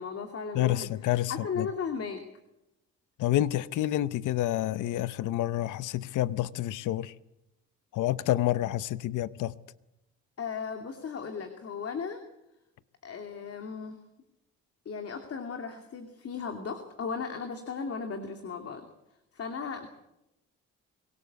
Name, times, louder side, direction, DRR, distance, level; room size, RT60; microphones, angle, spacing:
voice 1, 0.0-0.9 1.3-2.2 10.4-12.2 13.0-14.0 14.8-18.9 19.3-19.9, left 5 dB, 50° left, 2.7 m, -36 dB
voice 2, 0.5-1.7 3.2-7.1 7.9-9.5, left 14 dB, 80° left, 0.8 m, -28 dB
23.5 x 17.5 x 8.2 m
cardioid pair, 90°, 30 cm